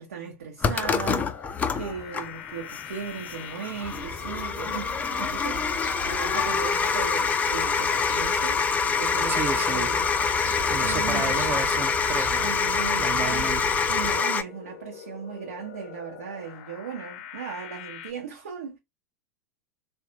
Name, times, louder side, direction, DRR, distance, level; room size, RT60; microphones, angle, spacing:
voice 1, 0.0-10.0 10.7-11.4 12.4-13.6 13.9-18.8, right 7 dB, 70° right, 0.8 m, -37 dB
sound 1, 0.6-18.1, left 9 dB, 55° left, 0.6 m, -44 dB
sound 2, 0.6-14.4, left 5 dB, 20° left, 0.4 m, -26 dB
sound 3, 3.8-14.2, right 2 dB, 85° right, 1.3 m, -39 dB
voice 2, 9.3-9.9 10.7-12.5 13.0-13.6, right 6 dB, 25° right, 0.6 m, -32 dB
3.3 x 2.2 x 2.6 m
figure-of-eight pair, 85°, 8 cm